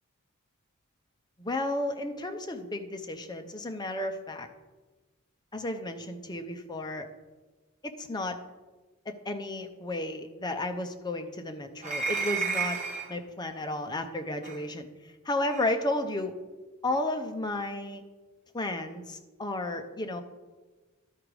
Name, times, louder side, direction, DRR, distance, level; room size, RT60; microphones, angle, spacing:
voice 1, 1.4-4.5 5.5-7.1 7.8-8.4 9.1-12.8 13.1-16.4 16.8-18.0 18.5-20.2, left 2 dB, 20° left, 6 dB, 0.6 m, -33 dB
sound 1, 11.8-13.1 14.4-14.6 15.5-15.7, right 5 dB, 35° right, 1.2 m, -31 dB
12.0 x 4.9 x 4.8 m, 1.3 s
head